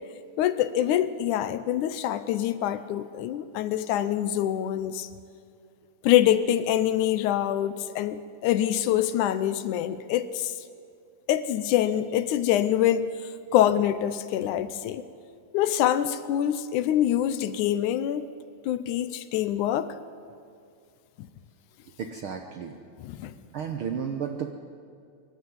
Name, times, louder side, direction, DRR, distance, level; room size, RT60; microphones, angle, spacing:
voice 1, 0.4-5.1 6.0-10.5 11.3-13.1 13.5-15.0 15.5-18.2 18.7-19.9 21.2-21.3 23.0-23.3, left 11 dB, 75° left, 13 dB, 2.1 m, -25 dB
voice 2, 22.0-22.8 23.5-24.5, right 7 dB, 85° right, 5 dB, 1.1 m, -32 dB
25.0 x 12.0 x 9.4 m, 2.4 s
omnidirectional pair, 3.8 m